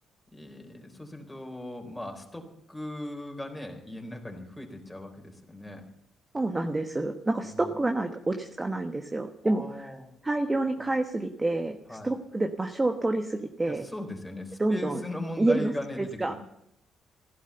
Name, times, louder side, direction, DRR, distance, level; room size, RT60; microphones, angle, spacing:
voice 1, 0.3-5.9 7.4-7.7 9.4-10.1 11.9-12.1 13.7-16.4, left 1 dB, 10° left, 2 dB, 3.8 m, -38 dB
voice 2, 6.3-9.6 10.2-13.9 14.6-15.0 15.4-15.7 16.0-16.3, right 2 dB, 20° right, 5 dB, 1.2 m, -28 dB
15.5 x 12.0 x 6.9 m, 0.79 s
cardioid pair, 90°, 0 cm